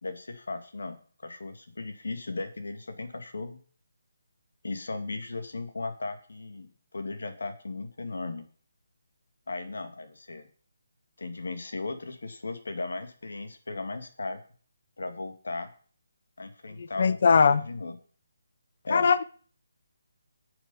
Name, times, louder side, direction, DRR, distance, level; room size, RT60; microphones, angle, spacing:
voice 1, 0.0-3.6 4.6-8.5 9.5-10.5 11.2-14.4 15.0-15.7 16.4-18.0 18.9-19.3, left 3 dB, 85° left, 2.1 m, -36 dB
voice 2, 16.8-17.6 18.9-19.2, left 5 dB, 45° left, 0.6 m, -21 dB
9.9 x 7.2 x 5.5 m
hypercardioid pair, 175°, 0 cm